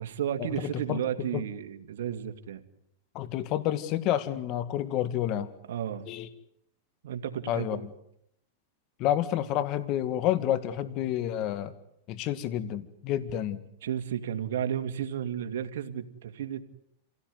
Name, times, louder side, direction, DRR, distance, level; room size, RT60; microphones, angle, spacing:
voice 1, 0.0-2.6 5.7-6.1 7.0-7.9 13.8-16.6, right 9 dB, 75° right, 6 dB, 2.3 m, -33 dB
voice 2, 3.2-5.5 6.1-6.3 7.5-7.8 9.0-11.7 12.1-13.6, left 12 dB, 45° left, 14 dB, 1.9 m, -29 dB
27.5 x 17.5 x 9.5 m, 0.75 s
hypercardioid pair, 130°, 0 cm